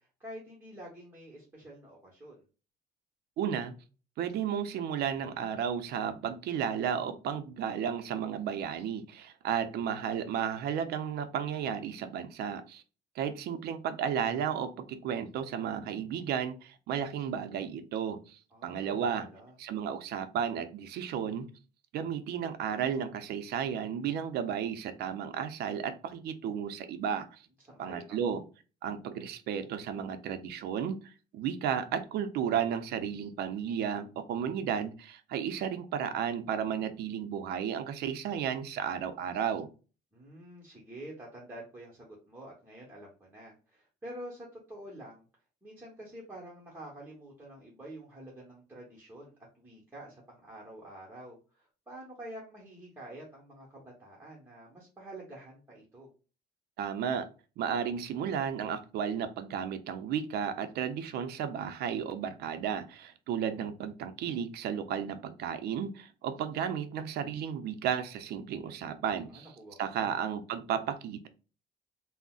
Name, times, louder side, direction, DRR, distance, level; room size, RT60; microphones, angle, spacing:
voice 1, 0.0-2.4 18.5-19.5 27.6-28.4 40.1-45.2 45.6-56.1 69.3-70.1, right 1 dB, 10° right, -5 dB, 1.0 m, -48 dB
voice 2, 3.4-3.7 4.2-12.8 13.2-19.3 19.6-21.5 21.9-27.4 27.8-28.4 28.8-39.7 56.8-57.3 57.6-69.5 69.8-71.3, right 8 dB, 70° right, 10 dB, 0.5 m, -33 dB
3.7 x 2.1 x 2.3 m, 0.34 s
cardioid pair, 110°, 17 cm